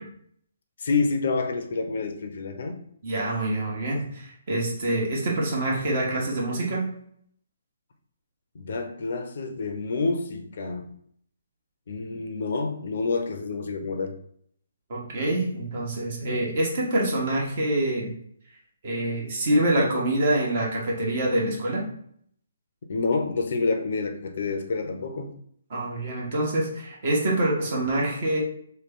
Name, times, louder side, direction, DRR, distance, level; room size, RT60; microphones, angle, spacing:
voice 1, 0.8-2.8 8.5-10.9 11.9-14.2 22.9-25.3, left 4 dB, 60° left, 6 dB, 0.5 m, -28 dB
voice 2, 3.0-6.9 14.9-18.1 18.8-21.9 25.7-28.4, right 1 dB, 50° right, -2 dB, 1.2 m, -26 dB
3.1 x 2.2 x 3.5 m, 0.65 s
figure-of-eight pair, 140°, 0 cm